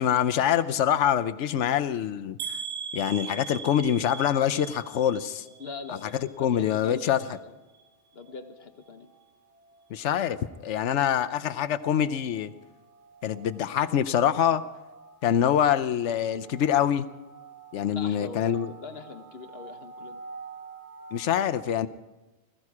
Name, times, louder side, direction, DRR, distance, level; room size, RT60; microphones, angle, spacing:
voice 1, 0.0-2.4 2.9-5.5 6.1-7.2 9.9-10.4 10.6-12.5 13.2-14.6 15.2-17.1 17.7-18.7 21.1-21.9, left 9 dB, 70° left, 12 dB, 1.0 m, -25 dB
sound 1, 2.4-6.4 6.7-7.3 7.7-7.9 8.2-8.3, right 6 dB, 85° right, 1.2 m, -40 dB
sound 2, 5.1-21.3, right 4 dB, 60° right, 2.2 m, -50 dB
voice 2, 5.6-7.5 8.1-9.1 17.9-20.2, left 4 dB, 55° left, 7 dB, 1.4 m, -42 dB
20.0 x 14.0 x 4.9 m, 1.1 s
omnidirectional pair, 1.3 m